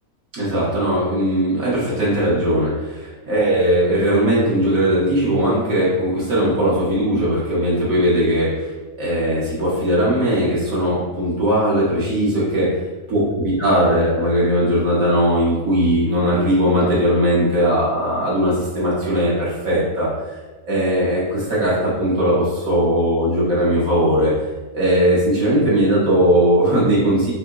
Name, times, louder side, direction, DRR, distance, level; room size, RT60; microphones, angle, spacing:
voice 1, 0.3-8.7 9.0-12.7 13.1-20.3 20.7-24.3 24.7-27.3, equal, 65° right, -8 dB, 1.6 m, -19 dB
3.5 x 2.9 x 3.6 m, 1.2 s
omnidirectional pair, 1.6 m